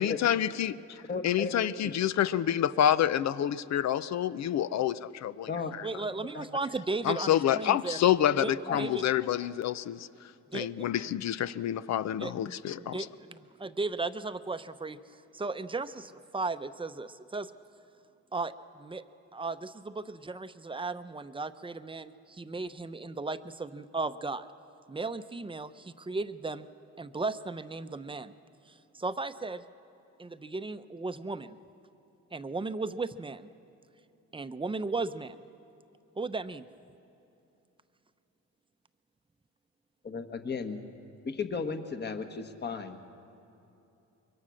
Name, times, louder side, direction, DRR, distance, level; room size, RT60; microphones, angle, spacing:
voice 1, 0.0-1.0 1.2-5.9 7.0-10.1 10.5-13.0, left 10 dB, 60° left, 15 dB, 0.7 m, -28 dB
voice 2, 1.1-1.5 5.5-5.7 6.3-6.4 8.7-8.8 40.0-40.8 41.2-43.0, left 5 dB, 35° left, 7 dB, 1.5 m, -34 dB
voice 3, 5.8-8.0 8.4-9.0 10.5-10.9 12.2-15.0 15.3-17.5 18.3-19.0 19.3-24.5 24.9-26.7 27.0-28.3 28.7-29.6 30.2-31.5 32.3-33.5 34.3-35.4 36.2-36.6, right 3 dB, 15° right, 11 dB, 0.7 m, -36 dB
24.5 x 23.0 x 6.4 m, 2.9 s
cardioid pair, 90°, 30 cm